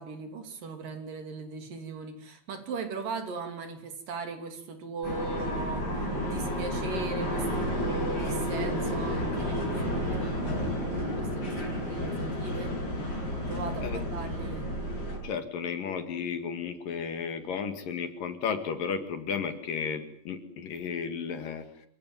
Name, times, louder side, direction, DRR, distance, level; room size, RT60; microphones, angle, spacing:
voice 1, 0.0-12.8 13.4-14.7, right 4 dB, 60° right, 7 dB, 4.4 m, -39 dB
sound 1, 5.0-15.2, equal, 25° left, 8.6 m, -31 dB
voice 2, 15.2-21.7, left 6 dB, 60° left, 9 dB, 3.5 m, -33 dB
27.5 x 17.0 x 9.4 m, 0.64 s
omnidirectional pair, 4.6 m